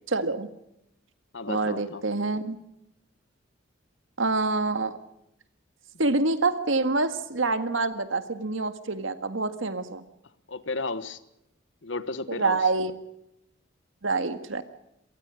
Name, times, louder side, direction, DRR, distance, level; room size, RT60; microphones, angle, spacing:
voice 1, 0.1-0.5 1.5-2.6 4.2-5.0 6.0-10.0 12.3-12.9 14.0-14.6, right 3 dB, 80° right, 10 dB, 1.8 m, -26 dB
voice 2, 1.3-2.0 10.5-11.2 11.8-12.6, left 3 dB, 70° left, 14 dB, 1.3 m, -33 dB
27.0 x 18.5 x 6.4 m, 0.84 s
head